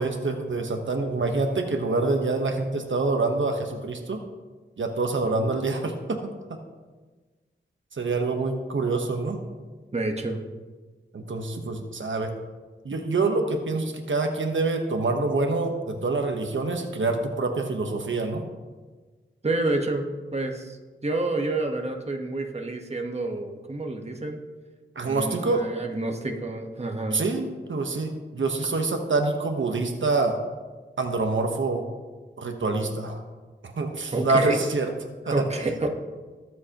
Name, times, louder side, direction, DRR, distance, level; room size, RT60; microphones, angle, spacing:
voice 1, 0.0-4.2 4.8-6.6 7.9-9.4 11.1-12.3 12.8-18.4 24.9-25.6 27.1-30.4 31.0-31.9 32.4-33.2 33.6-34.9 35.3-35.4, right 3 dB, 75° right, 4 dB, 1.1 m, -26 dB
voice 2, 9.9-10.4 19.4-24.4 25.0-27.2 34.1-34.6 35.3-35.9, right 2 dB, 30° right, 2 dB, 1.2 m, -29 dB
21.5 x 7.6 x 3.0 m, 1.3 s
wide cardioid pair, 95°, 20 cm